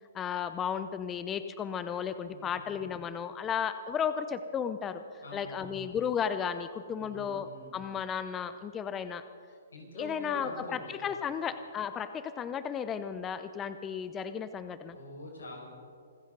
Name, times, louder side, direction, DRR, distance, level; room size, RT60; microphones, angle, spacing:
voice 1, 0.1-5.0 5.3-9.2 9.9-15.0, left 7 dB, 20° left, 11 dB, 0.6 m, -34 dB
voice 2, 2.3-2.7 5.2-5.9 7.0-7.7 9.7-11.0 14.9-15.6, left 2 dB, 90° left, 0 dB, 5.3 m, -45 dB
26.0 x 14.0 x 4.0 m, 2.2 s
hypercardioid pair, 135°, 0 cm